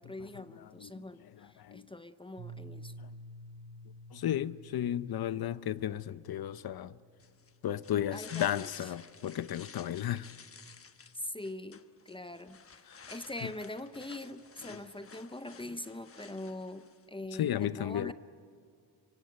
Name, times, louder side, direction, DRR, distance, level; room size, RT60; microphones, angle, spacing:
voice 1, 0.0-2.9 8.1-8.9 11.1-12.8 13.1-18.1, left 1 dB, 15° left, 0.6 m, -43 dB
Piano, 2.4-8.0, right 1 dB, 70° right, 2.4 m, -51 dB
voice 2, 4.1-6.9 7.6-10.3 12.9-13.0 17.4-18.1, left 11 dB, 65° left, 0.7 m, -33 dB
sound 1, 7.2-17.1, left 5 dB, 35° left, 1.1 m, -53 dB
25.0 x 24.5 x 9.3 m
wide cardioid pair, 170°, 41 cm